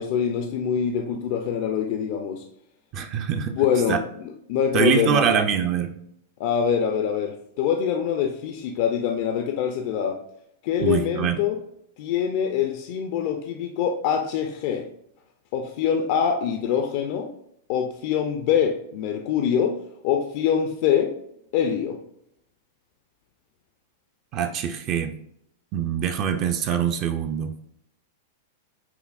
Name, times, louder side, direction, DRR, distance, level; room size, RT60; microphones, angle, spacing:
voice 1, 0.0-2.4 3.6-4.0 4.5-5.2 6.4-10.2 10.6-11.6 12.0-14.9 15.5-17.3 17.7-19.8 20.0-21.2 21.5-22.0, left 8 dB, 55° left, 4 dB, 0.4 m, -24 dB
voice 2, 2.9-3.5 3.9-4.0 4.7-6.0 10.8-11.4 24.3-25.2 25.7-27.5, right 8 dB, 40° right, 6 dB, 0.4 m, -24 dB
5.6 x 2.0 x 2.3 m, 0.73 s
hypercardioid pair, 120°, 0 cm